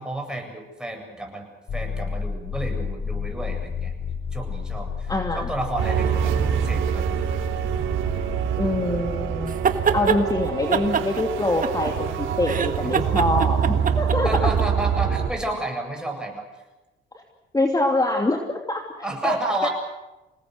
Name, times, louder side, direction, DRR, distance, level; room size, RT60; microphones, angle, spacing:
voice 1, 0.0-1.5 1.7-3.9 4.3-7.0 13.0-13.1 14.2-16.5 19.0-19.7, right 2 dB, 5° right, 2 dB, 7.9 m, -31 dB
sound 1, 1.7-8.5, left 5 dB, 65° left, 4.4 m, -31 dB
voice 2, 5.1-5.5 8.6-9.6 9.9-14.5 17.1-17.2 17.5-19.4 19.6-19.7, left 2 dB, 20° left, 3 dB, 2.9 m, -25 dB
sound 2, 5.8-15.3, right 8 dB, 80° right, 3.6 m, -25 dB
sound 3, 9.5-10.2 10.7-12.1 12.4-14.6, right 6 dB, 45° right, 1.8 m, -24 dB
28.0 x 19.0 x 8.1 m, 1.0 s
cardioid pair, 90°, 20 cm